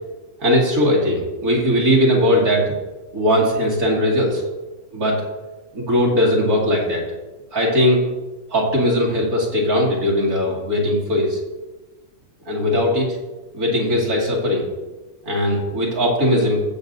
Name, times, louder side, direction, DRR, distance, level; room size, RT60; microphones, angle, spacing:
voice 1, 0.4-2.7 3.1-4.4 4.9-5.2 5.7-7.0 7.5-8.0 8.5-11.4 12.5-13.2 13.5-14.7 15.2-16.6, equal, 75° right, -4 dB, 2.7 m, -19 dB
15.5 x 7.5 x 2.7 m, 1.1 s
omnidirectional pair, 1.6 m